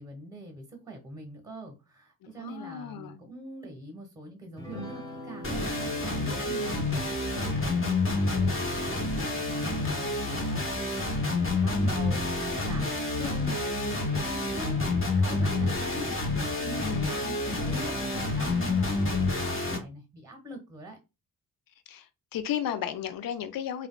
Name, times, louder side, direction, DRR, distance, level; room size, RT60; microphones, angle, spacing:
voice 1, 0.0-10.7 11.1-21.0, right 1 dB, 5° right, 1.1 m, -43 dB
voice 2, 2.4-3.2 9.7-10.0 16.7-17.1 21.9-23.9, left 9 dB, 45° left, 0.6 m, -35 dB
sound 1, 4.6-10.2, equal, 10° left, 1.4 m, -46 dB
sound 2, 5.4-19.8, left 2 dB, 25° left, 1.1 m, -28 dB
3.3 x 2.4 x 2.2 m
hypercardioid pair, 45°, 48 cm